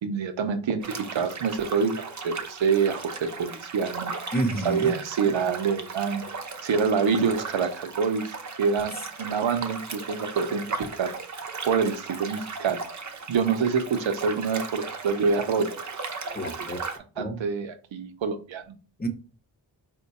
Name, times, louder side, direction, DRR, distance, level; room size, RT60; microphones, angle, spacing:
voice 1, 0.0-4.1 4.6-6.3 6.6-8.9 9.2-11.1 11.7-12.8 13.3-15.8 17.2-18.8, right 5 dB, 85° right, 0.7 m, -26 dB
sound 1, 0.8-17.0, right 4 dB, 40° right, 0.6 m, -37 dB
voice 2, 4.3-4.9 16.3-16.8 17.2-17.4 19.0-19.1, right 1 dB, 20° left, 0.7 m, -29 dB
4.4 x 2.2 x 4.0 m
wide cardioid pair, 70°, 45 cm